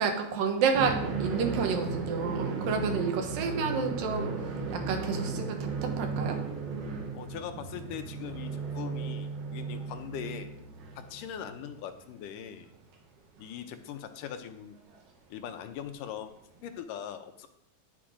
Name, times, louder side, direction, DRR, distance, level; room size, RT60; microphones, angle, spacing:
voice 1, 0.0-4.3 4.7-6.4, right 5 dB, 85° right, 4 dB, 3.0 m, -30 dB
sound 1, 0.7-11.7 12.0-12.1 13.4-13.5 14.9-15.0 16.6-16.7, right 4 dB, 65° right, 2.7 m, -35 dB
voice 2, 7.1-10.5 11.0-12.7 13.4-14.8 15.3-16.3 16.6-17.5, left 9 dB, 80° left, 7 dB, 2.3 m, -41 dB
10.5 x 7.5 x 5.0 m, 0.75 s
omnidirectional pair, 3.9 m